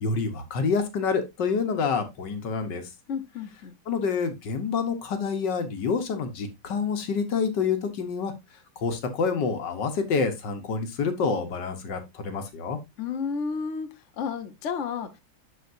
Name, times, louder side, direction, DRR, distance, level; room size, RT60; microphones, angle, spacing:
voice 1, 0.0-2.8 3.9-8.3 8.8-12.8, left 5 dB, 65° left, 1.8 m, -27 dB
voice 2, 3.1-3.8 13.0-15.2, left 6 dB, 50° left, 0.9 m, -32 dB
11.5 x 4.5 x 2.6 m
omnidirectional pair, 2.1 m